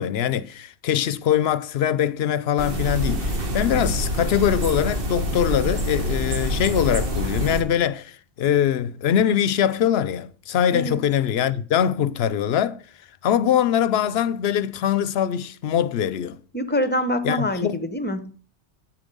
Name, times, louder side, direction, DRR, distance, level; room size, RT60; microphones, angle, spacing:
voice 1, 0.0-12.8 13.2-16.4 17.2-17.8, left 9 dB, 70° left, 0.8 m, -22 dB
sound 1, 2.6-7.6, equal, 55° right, 1.5 m, -26 dB
voice 2, 16.5-18.3, equal, 10° left, 0.8 m, -25 dB
8.9 x 7.2 x 5.4 m
omnidirectional pair, 1.1 m